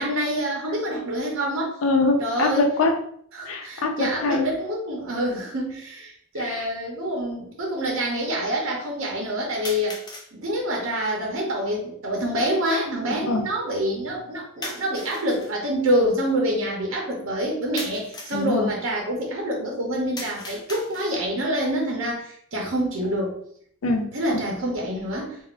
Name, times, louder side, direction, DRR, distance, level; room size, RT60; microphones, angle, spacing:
voice 1, 0.0-1.8 2.2-2.7 3.3-10.0 10.3-23.4 24.1-25.4, equal, 75° right, -1 dB, 0.7 m, -26 dB
voice 2, 1.8-3.0 3.5-4.5 6.4-6.7 13.1-13.5 18.3-18.7 23.8-24.4, left 3 dB, 75° left, 3 dB, 0.5 m, -24 dB
sound 1, 5.3-5.4 6.4-6.5 9.6-10.3 14.6-15.5 17.8-18.5 20.2-21.3, left 2 dB, 20° left, 0.4 m, -38 dB
3.5 x 2.0 x 2.4 m, 0.63 s
head